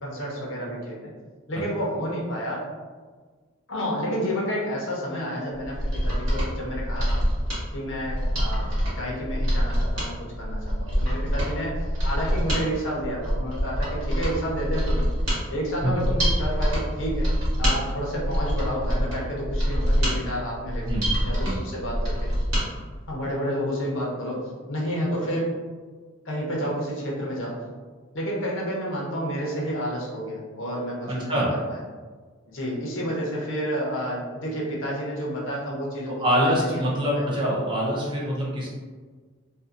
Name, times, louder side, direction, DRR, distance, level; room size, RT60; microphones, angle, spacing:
voice 1, 0.0-1.1 1.5-2.6 3.7-7.2 7.7-15.1 15.5-17.3 17.6-21.0 21.2-22.3 23.1-24.4 24.7-25.5 26.2-27.6 28.1-31.8 32.5-36.8 37.1-37.3, equal, 60° left, -3 dB, 0.8 m, -30 dB
Mechanisms, 5.6-22.7 23.0-23.1, equal, 65° right, 1.3 m, -25 dB
voice 2, 31.1-31.5 36.1-38.7, equal, 20° right, -5 dB, 0.6 m, -25 dB
2.6 x 2.5 x 2.5 m, 1.5 s
head